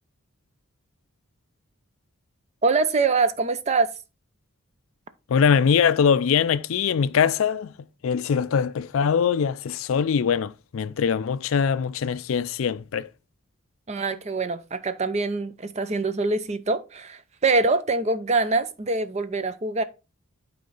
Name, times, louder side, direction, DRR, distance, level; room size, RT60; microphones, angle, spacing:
voice 1, 2.6-3.9 13.9-19.8, right 3 dB, 30° right, 0.5 m, -24 dB
voice 2, 5.3-7.7 8.0-13.1, left 7 dB, 70° left, 0.4 m, -22 dB
8.2 x 4.6 x 3.9 m
head